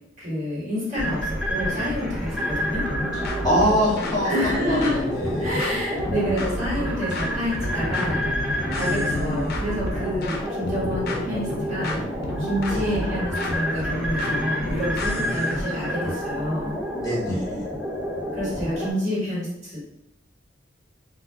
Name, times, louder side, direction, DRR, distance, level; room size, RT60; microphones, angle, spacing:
voice 1, 0.2-2.8 4.2-5.0 5.4-8.3 8.8-12.0 12.4-16.8 18.3-19.8, equal, 40° right, -7 dB, 1.2 m, -28 dB
sound 1, 0.9-18.9, equal, 5° right, 0.4 m, -29 dB
sound 2, 2.9-15.5, left 1 dB, 55° left, 0.4 m, -32 dB
voice 2, 3.1-4.3 4.7-5.6 8.6-9.6 12.7-13.0 15.2-15.6 17.0-17.6, equal, 20° left, -5 dB, 0.9 m, -26 dB
2.2 x 2.0 x 3.4 m, 0.83 s
head